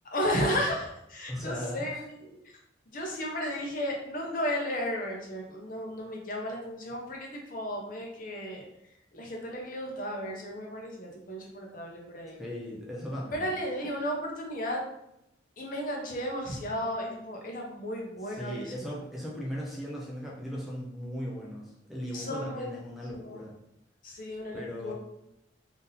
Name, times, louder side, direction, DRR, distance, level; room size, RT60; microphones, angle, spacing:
voice 1, 0.1-2.4 2.9-8.6 9.1-12.4 13.3-14.8 15.6-19.0 22.1-22.7 23.1-23.4 24.0-24.9, equal, 45° left, -1 dB, 0.8 m, -34 dB
voice 2, 1.3-2.0 12.4-13.5 18.2-23.5 24.5-24.9, equal, ahead, -4 dB, 0.5 m, -38 dB
3.7 x 2.7 x 3.9 m, 0.83 s
head